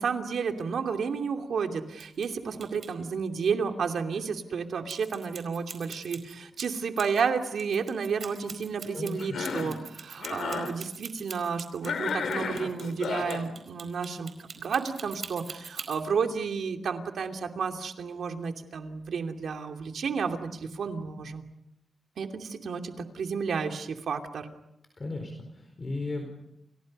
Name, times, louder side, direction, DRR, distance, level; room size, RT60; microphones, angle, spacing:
voice 1, 0.0-21.4 22.2-24.5, right 5 dB, 75° right, 5 dB, 2.7 m, -31 dB
sound 1, 1.9-2.3 2.6-2.9 4.9-7.2 7.6-16.0, right 6 dB, 55° right, 4.5 m, -43 dB
voice 2, 8.9-9.4 24.9-26.3, left 2 dB, 30° left, 4 dB, 4.5 m, -35 dB
Cough, 9.2-9.8 10.2-10.7 11.8-13.5, left 5 dB, 80° left, 3.8 m, -33 dB
30.0 x 29.5 x 5.5 m, 0.83 s
wide cardioid pair, 145°, 0 cm